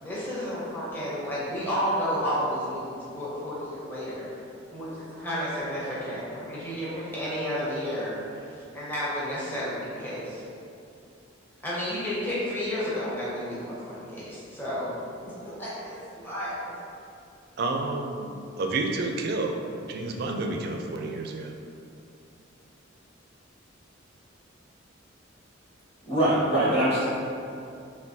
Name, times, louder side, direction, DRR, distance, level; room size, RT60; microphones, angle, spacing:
voice 1, 0.0-10.4 11.6-14.9 15.4-16.8, equal, 10° left, -9 dB, 0.7 m, -32 dB
voice 2, 17.6-21.6, right 2 dB, 50° right, 2 dB, 0.4 m, -30 dB
voice 3, 26.1-27.0, right 1 dB, 30° left, -10 dB, 1.5 m, -22 dB
5.9 x 2.3 x 2.7 m, 2.6 s
head